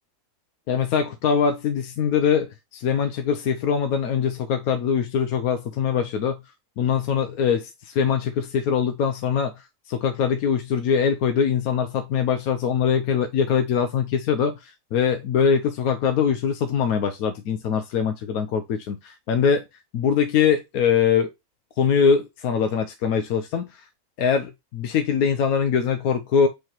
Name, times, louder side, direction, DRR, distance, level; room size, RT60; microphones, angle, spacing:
voice 1, 0.7-6.4 6.8-19.6 19.9-21.3 21.8-23.8 24.2-26.5, left 7 dB, 90° left, 1.2 m, -23 dB
6.6 x 3.2 x 4.4 m
omnidirectional pair, 1.5 m